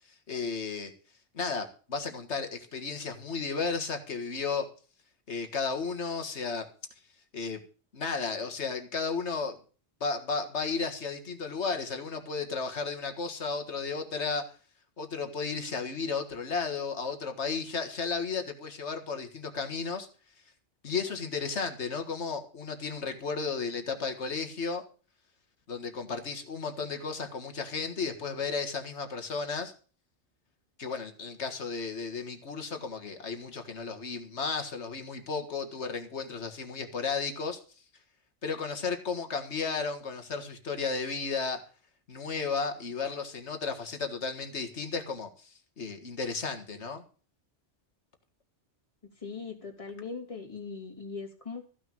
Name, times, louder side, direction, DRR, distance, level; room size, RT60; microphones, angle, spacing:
voice 1, 0.3-0.9 1.3-4.7 5.3-6.7 7.3-7.6 7.9-9.6 10.0-14.4 15.0-20.1 20.8-24.8 25.7-29.7 30.8-37.6 38.4-41.6 42.1-47.0, left 4 dB, 70° left, 7 dB, 2.0 m, -34 dB
voice 2, 49.2-51.6, left 4 dB, 30° left, 1 dB, 2.7 m, -40 dB
14.5 x 6.2 x 7.1 m, 0.39 s
omnidirectional pair, 1.2 m